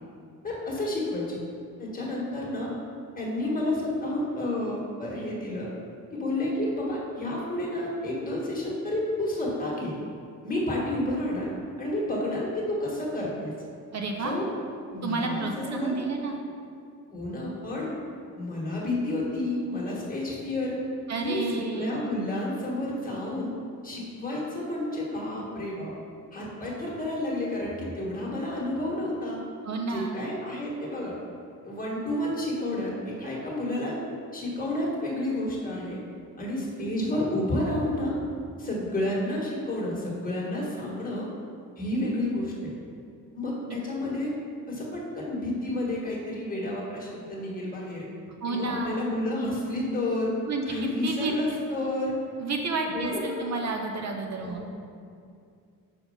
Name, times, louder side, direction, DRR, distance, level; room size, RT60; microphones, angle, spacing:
voice 1, 0.4-1.4 1.8-2.7 3.1-5.7 6.1-10.0 10.4-11.5 11.8-13.5 14.2-14.5 14.9-16.0 17.1-17.9 18.4-20.8 21.2-23.5 23.8-25.9 26.3-29.4 29.9-31.1 31.6-34.0 34.3-36.0 36.4-38.1 38.6-41.3 41.8-42.7 43.3-44.3 44.7-48.1 48.5-50.3 50.6-52.2 52.8-53.5 54.4-54.6, left 1 dB, 25° left, -4 dB, 1.6 m, -30 dB
voice 2, 13.9-14.3 15.0-16.4 21.1-22.0 29.6-30.2 48.4-49.1 50.5-50.6 51.0-51.3 52.4-54.6, right 3 dB, 50° right, 2 dB, 0.6 m, -30 dB
5.3 x 4.5 x 5.5 m, 2.3 s
cardioid pair, 115°, 33 cm